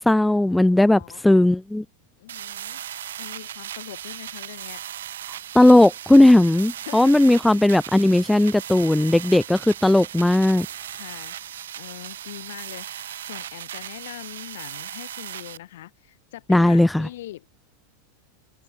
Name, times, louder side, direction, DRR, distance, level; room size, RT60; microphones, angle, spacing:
voice 1, 0.0-1.8 5.5-10.7 16.5-17.1, left 1 dB, 5° left, 0.3 m, -17 dB
voice 2, 0.9-1.2 2.2-4.8 6.8-7.2 10.9-17.5, left 14 dB, 65° left, 2.9 m, -42 dB
sound 1, 2.3-15.6, right 11 dB, 70° right, 1.3 m, -37 dB
hypercardioid pair, 95°, 0 cm